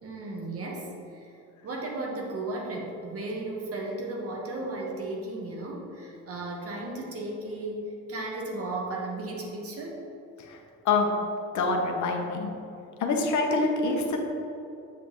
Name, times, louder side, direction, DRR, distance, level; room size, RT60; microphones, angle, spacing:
voice 1, 0.0-1.3 1.6-7.8 8.1-10.0, right 2 dB, 50° right, -1 dB, 1.3 m, -35 dB
voice 2, 10.8-11.2 11.5-12.5 13.0-14.2, left 3 dB, 75° left, 2 dB, 1.0 m, -25 dB
7.4 x 5.4 x 3.0 m, 2.7 s
cardioid pair, 90°, 30 cm